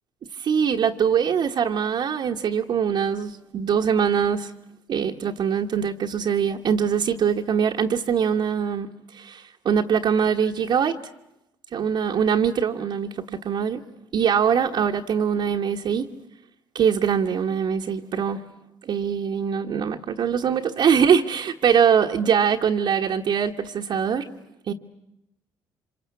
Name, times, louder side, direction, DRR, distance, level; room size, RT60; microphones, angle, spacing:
voice 1, 0.4-4.5 4.9-11.0 11.7-13.8 14.1-16.1 16.7-18.4 18.8-24.3 24.7-24.8, right 7 dB, 55° right, 1 dB, 1.4 m, -23 dB
26.0 x 25.5 x 8.4 m, 0.86 s
supercardioid pair, 65°, 9 cm